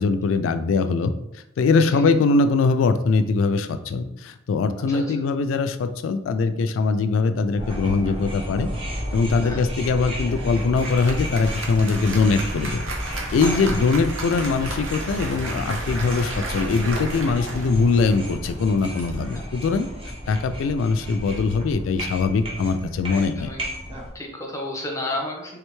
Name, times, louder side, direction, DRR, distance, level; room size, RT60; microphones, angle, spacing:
voice 1, 0.0-8.7 9.1-19.9 20.3-23.5, left 4 dB, 85° left, 10 dB, 0.3 m, -22 dB
sound 1, 7.6-24.1, equal, 30° right, 0.7 m, -32 dB
voice 2, 9.3-9.6 13.3-13.8 19.3-19.4 23.1-23.6 24.1-25.6, left 1 dB, 15° left, 0 dB, 0.7 m, -32 dB
Applause, 10.2-20.1, right 2 dB, 90° right, 0.8 m, -35 dB
3.4 x 3.3 x 3.1 m, 0.86 s
head